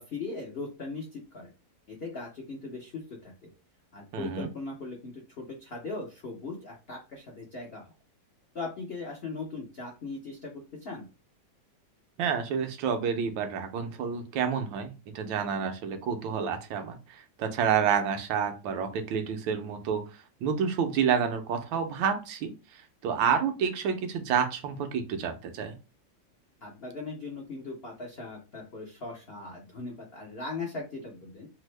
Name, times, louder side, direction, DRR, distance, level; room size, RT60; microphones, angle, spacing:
voice 1, 0.0-1.5 1.9-3.5 3.9-7.9 8.5-10.5 10.8-11.1 26.6-31.5, left 3 dB, 85° left, -1 dB, 0.5 m, -39 dB
voice 2, 4.1-4.5 12.2-17.0 17.4-20.0 20.4-22.5 23.0-25.7, right 7 dB, 90° right, 6 dB, 1.4 m, -29 dB
3.5 x 2.0 x 3.1 m, 0.30 s
omnidirectional pair, 2.0 m